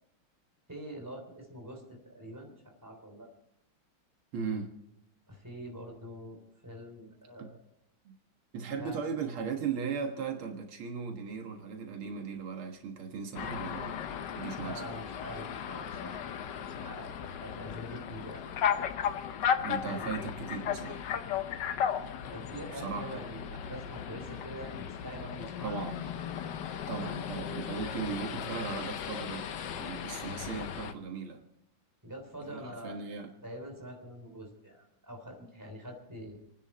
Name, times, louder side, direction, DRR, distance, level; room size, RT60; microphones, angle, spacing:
voice 1, 0.7-2.5 2.8-3.3 5.3-6.4 6.6-7.6 8.8-9.0 14.6-18.4 19.8-20.1 22.3-26.0 32.0-33.0 33.4-36.4, equal, 10° right, 2 dB, 3.3 m, -45 dB
voice 2, 4.3-4.7 7.4-7.5 8.1-8.2 8.5-14.0 14.3-14.9 19.6-21.1 22.8-23.3 25.6-25.9 26.9-29.4 29.8-31.4 32.4-33.3, right 5 dB, 85° right, 3 dB, 2.5 m, -37 dB
sound 1, 13.4-30.9, left 8 dB, 65° left, 1.4 m, -36 dB
29.0 x 9.8 x 4.3 m, 0.82 s
omnidirectional pair, 2.3 m